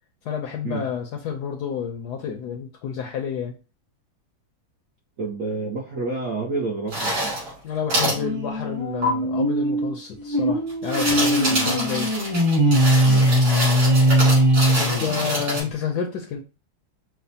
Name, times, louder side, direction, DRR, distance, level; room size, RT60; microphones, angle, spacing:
voice 1, 0.2-3.5 7.6-12.1 14.7-16.4, left 7 dB, 75° left, 3 dB, 0.9 m, -29 dB
voice 2, 5.2-7.4 11.5-11.8 13.0-13.3, right 3 dB, 70° right, -2 dB, 0.8 m, -29 dB
sound 1, 6.9-7.5 7.9-8.2 9.0-9.1 10.7-15.6, right 1 dB, 85° right, 3.4 m, -26 dB
sound 2, 8.1-15.7, equal, 30° right, 0.5 m, -20 dB
5.8 x 2.1 x 2.7 m, 0.31 s
omnidirectional pair, 2.2 m